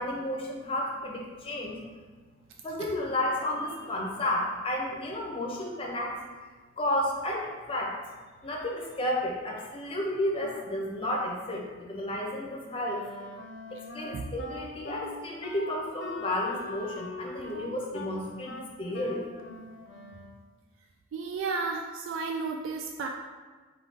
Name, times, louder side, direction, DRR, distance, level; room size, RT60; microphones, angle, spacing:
voice 1, 0.0-1.8 2.6-6.2 6.8-7.9 8.4-13.0 13.7-19.3, left 1 dB, 30° left, -1 dB, 0.7 m, -32 dB
Wind instrument woodwind instrument, 12.8-20.4, left 3 dB, 65° left, 0.5 m, -42 dB
voice 2, 21.1-23.1, right 4 dB, 75° right, 3 dB, 0.3 m, -32 dB
4.3 x 2.7 x 3.6 m, 1.4 s
head